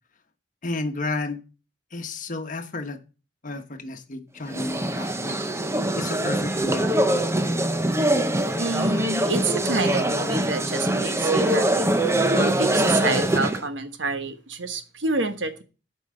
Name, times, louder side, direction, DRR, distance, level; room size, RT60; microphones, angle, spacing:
voice 1, 0.6-1.4 1.9-3.0 3.4-5.4 6.0-7.5, left 2 dB, 45° left, 1.2 m, -32 dB
sound 1, 4.5-13.6, right 1 dB, 15° right, 0.8 m, -23 dB
voice 2, 8.6-11.9 12.3-15.6, right 3 dB, 75° right, 1.3 m, -28 dB
8.8 x 5.5 x 7.6 m
head